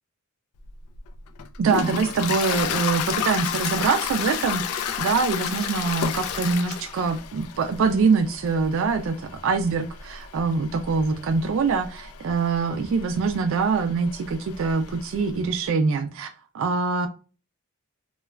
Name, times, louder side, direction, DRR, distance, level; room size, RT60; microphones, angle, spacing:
Toilet flush, 0.6-15.4, left 8 dB, 80° left, 0.3 m, -32 dB
voice 1, 1.6-17.1, right 4 dB, 60° right, 0.3 m, -24 dB
3.1 x 2.2 x 2.2 m
head